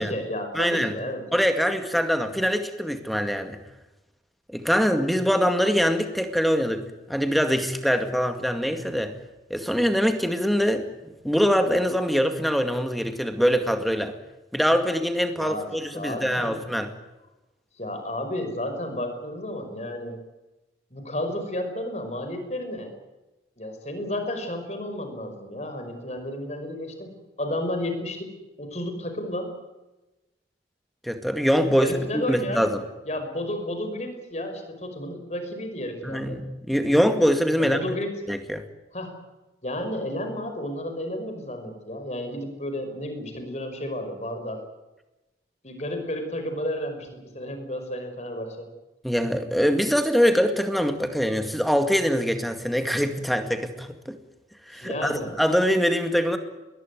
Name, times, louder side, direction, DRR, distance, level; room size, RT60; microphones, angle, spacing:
voice 1, 0.0-1.3 15.4-16.6 17.8-20.2 20.9-22.9 23.6-29.5 31.7-32.7 33.1-36.4 37.6-38.1 38.9-39.1 39.6-44.6 45.6-48.7 54.8-55.3, left 1 dB, 40° left, 6 dB, 5.4 m, -32 dB
voice 2, 0.5-0.9 1.3-3.6 4.5-6.8 7.1-9.1 9.5-10.9 11.2-14.1 14.5-16.9 31.0-32.8 36.0-37.8 38.3-38.6 49.0-54.2 54.7-56.4, equal, ahead, 7 dB, 2.1 m, -23 dB
21.5 x 20.0 x 9.6 m, 1.0 s
head